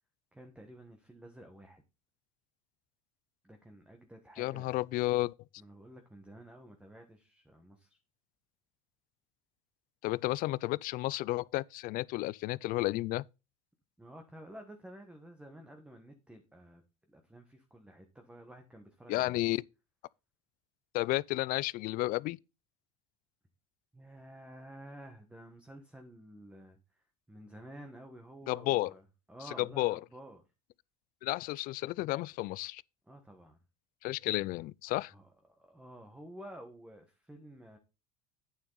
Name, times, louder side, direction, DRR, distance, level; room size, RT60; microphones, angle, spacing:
voice 1, 0.3-1.8 3.4-4.8 5.6-8.0 14.0-16.8 17.1-19.4 23.9-30.4 33.0-33.6 35.1-37.8, right 1 dB, 5° right, 1.3 m, -51 dB
voice 2, 4.4-5.3 10.0-13.2 19.1-19.6 20.9-22.4 28.5-28.9 29.6-30.0 31.2-32.8 34.0-35.1, left 18 dB, 55° left, 0.4 m, -32 dB
8.9 x 7.1 x 4.0 m
supercardioid pair, 110°, 18 cm